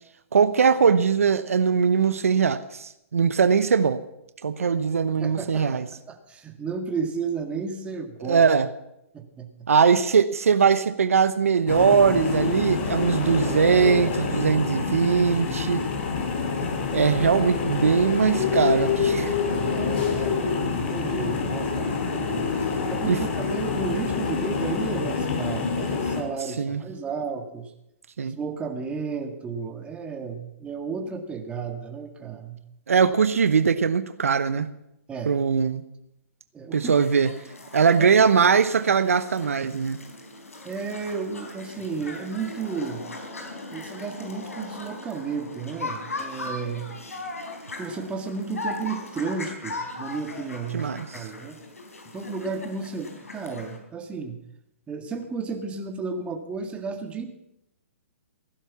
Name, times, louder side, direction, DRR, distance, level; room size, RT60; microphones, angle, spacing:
voice 1, 0.3-4.0 4.4-5.8 8.2-8.7 9.7-15.8 16.9-19.3 23.1-23.2 26.6-26.8 28.2-28.4 32.9-34.7 35.3-35.8 36.7-37.3 37.7-40.0 50.7-51.2, right 6 dB, 80° right, 12 dB, 1.0 m, -21 dB
voice 2, 5.1-8.5 9.1-9.5 19.5-20.4 20.7-27.7 28.2-32.6 35.1-35.4 36.5-37.0 38.0-38.1 40.6-43.0 43.7-46.9 47.8-51.6 52.1-54.4 54.9-57.3, right 5 dB, 15° right, 5 dB, 1.9 m, -33 dB
sound 1, 11.7-26.2, left 5 dB, 50° left, 4.4 m, -26 dB
sound 2, 36.8-53.8, left 2 dB, 90° left, 4.3 m, -38 dB
15.5 x 11.0 x 7.2 m, 0.83 s
hypercardioid pair, 130°, 8 cm